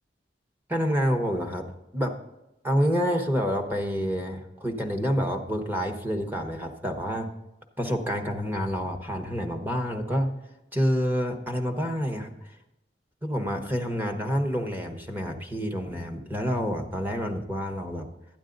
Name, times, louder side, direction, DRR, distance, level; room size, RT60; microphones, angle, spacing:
voice 1, 0.7-1.7 1.9-2.2 2.6-7.3 7.8-10.3 10.7-12.5 13.2-18.1, equal, 10° right, 4 dB, 1.1 m, -28 dB
12.5 x 9.0 x 3.9 m, 0.93 s
head